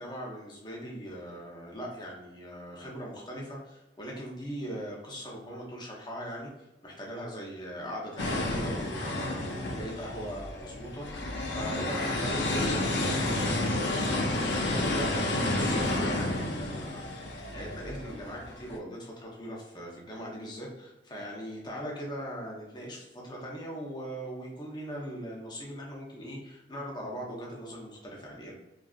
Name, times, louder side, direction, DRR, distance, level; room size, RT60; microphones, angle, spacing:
voice 1, 0.0-17.1 17.5-28.5, equal, 25° left, -2 dB, 0.6 m, -40 dB
sound 1, 8.2-18.8, left 2 dB, 70° left, 0.4 m, -30 dB
2.6 x 2.3 x 2.3 m, 1.0 s
head